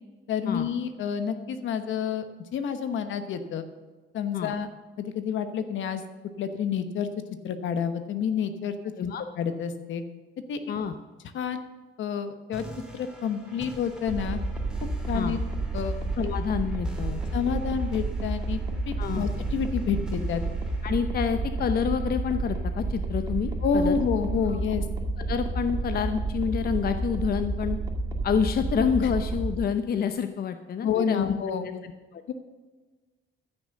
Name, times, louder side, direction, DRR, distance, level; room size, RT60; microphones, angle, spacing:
voice 1, 0.3-2.3 2.5-3.7 4.1-4.7 5.0-6.0 6.4-7.1 7.4-8.8 9.4-10.0 10.5-10.6 11.3-11.6 12.0-12.6 12.9-14.4 15.1-15.4 15.7-16.0 17.3-18.6 18.8-20.4 23.6-24.8 30.8-31.8 32.3-32.4, left 7 dB, 75° left, 9 dB, 1.2 m, -29 dB
sound 1, 12.5-23.5, equal, 5° right, 2.4 m, -47 dB
sound 2, 14.1-29.5, right 2 dB, 20° right, 1.9 m, -30 dB
voice 2, 16.2-17.2 19.0-19.3 20.8-23.9 24.5-24.6 25.2-27.8 28.2-31.3 31.6-31.7 32.1-32.3, left 7 dB, 50° left, 8 dB, 0.7 m, -28 dB
14.0 x 6.2 x 6.6 m, 1.3 s
cardioid pair, 90°, 20 cm